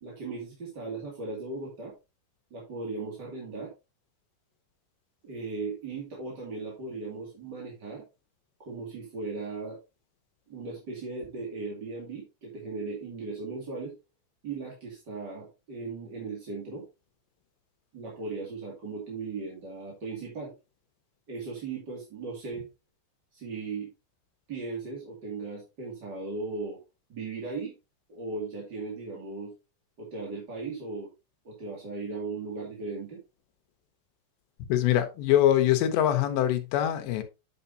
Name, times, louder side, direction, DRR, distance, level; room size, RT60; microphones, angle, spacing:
voice 1, 0.0-1.9 2.5-3.7 5.2-8.0 8.6-9.8 10.5-13.9 14.4-16.8 17.9-20.5 21.3-22.7 23.3-23.9 24.5-26.8 27.1-27.7 28.1-29.5 30.0-31.1 31.4-33.2, right 3 dB, 35° right, 2.1 m, -37 dB
voice 2, 34.7-37.2, left 12 dB, 75° left, 3.2 m, -23 dB
8.1 x 7.8 x 2.8 m
omnidirectional pair, 5.2 m